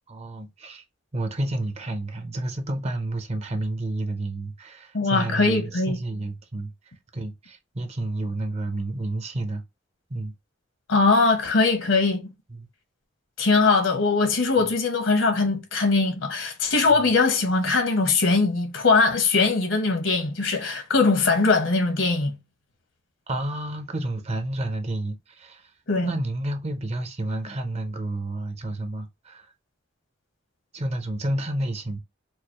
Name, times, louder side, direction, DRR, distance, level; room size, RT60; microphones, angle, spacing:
voice 1, 0.1-0.8 1.1-6.7 7.1-9.6 10.1-10.3 12.5-12.7 23.3-25.7 26.0-29.5 30.7-32.0, right 1 dB, 35° right, 0.7 m, -30 dB
voice 2, 4.9-6.0 10.9-12.2 13.4-22.4 25.9-26.1, left 3 dB, 75° left, 1.0 m, -21 dB
4.6 x 2.0 x 2.9 m
head